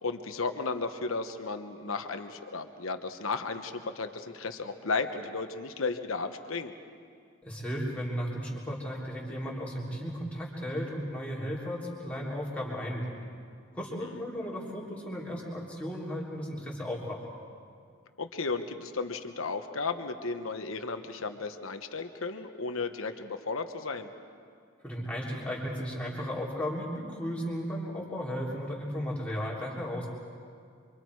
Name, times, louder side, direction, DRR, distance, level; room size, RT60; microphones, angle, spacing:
voice 1, 0.0-6.7 14.0-14.2 18.2-24.1, left 4 dB, 80° left, 7 dB, 1.1 m, -34 dB
voice 2, 7.4-13.2 13.7-17.2 24.8-30.1, equal, 5° left, -5 dB, 3.4 m, -35 dB
28.0 x 24.5 x 4.8 m, 2.2 s
head